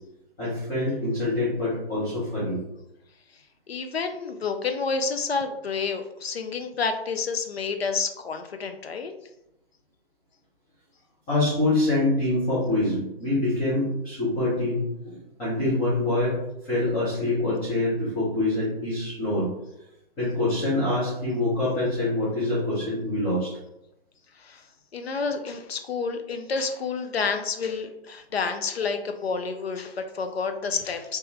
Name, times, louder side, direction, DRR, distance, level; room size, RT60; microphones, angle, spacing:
voice 1, 0.4-2.6 11.3-16.4 16.6-19.5 20.2-23.5, left 2 dB, 10° left, -11 dB, 0.4 m, -25 dB
voice 2, 3.7-9.1 24.4-24.6 24.9-31.2, left 5 dB, 80° left, 7 dB, 0.5 m, -29 dB
3.1 x 2.2 x 3.1 m, 0.84 s
figure-of-eight pair, 130°, 30 cm